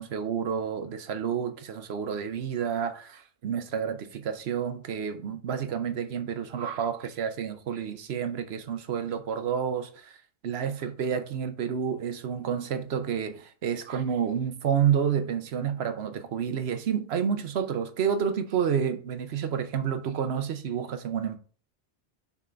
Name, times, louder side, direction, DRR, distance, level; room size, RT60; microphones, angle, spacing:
voice 1, 0.0-10.2 10.4-21.4, right 7 dB, 65° right, 1.0 m, -29 dB
5.9 x 3.7 x 5.6 m
omnidirectional pair, 1.2 m